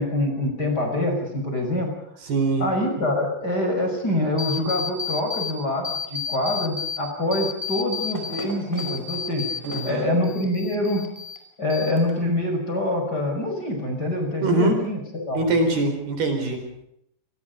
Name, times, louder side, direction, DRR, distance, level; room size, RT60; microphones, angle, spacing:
voice 1, 0.0-1.9 2.6-9.5 9.8-11.0 11.6-15.4, left 1 dB, 20° left, 2 dB, 5.9 m, -25 dB
voice 2, 2.2-2.7 9.7-10.1 14.4-14.8 15.3-16.6, right 2 dB, 60° right, 5 dB, 6.1 m, -23 dB
sound 1, 4.4-5.5 5.8-7.0 7.3-9.9 10.2-11.4 11.7-12.3, left 6 dB, 5° right, 4.7 m, -31 dB
28.5 x 20.5 x 5.3 m, 0.74 s
omnidirectional pair, 5.1 m